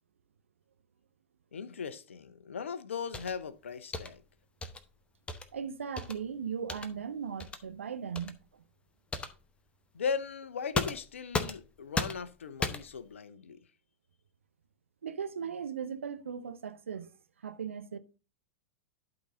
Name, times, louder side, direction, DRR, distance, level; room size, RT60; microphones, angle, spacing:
voice 1, 1.5-4.2 9.9-13.6, left 6 dB, 70° left, 0.7 m, -38 dB
sound 1, 3.1-3.4 3.9-4.1 4.6-4.8 5.3-5.5 6.0-6.2 6.7-6.9 7.4-7.6 8.1-8.3 9.1-9.4 10.7-11.7 11.9-12.3 12.6-13.0, left 3 dB, 15° left, 0.8 m, -35 dB
voice 2, 5.5-8.6 15.0-17.1 17.4-18.0, right 7 dB, 75° right, 0.6 m, -38 dB
11.5 x 4.0 x 3.7 m
figure-of-eight pair, 95°, 7 cm